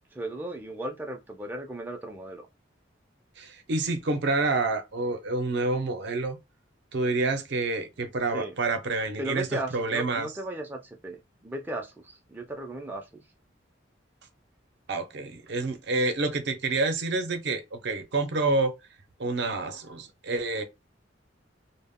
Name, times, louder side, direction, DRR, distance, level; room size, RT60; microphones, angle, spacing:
voice 1, 0.1-2.5 8.3-8.5 9.2-13.2, right 1 dB, 10° right, 0.3 m, -36 dB
voice 2, 3.4-6.4 6.9-10.3 14.9-18.7 19.2-20.6, right 3 dB, 65° right, 0.5 m, -28 dB
2.1 x 2.0 x 3.5 m
head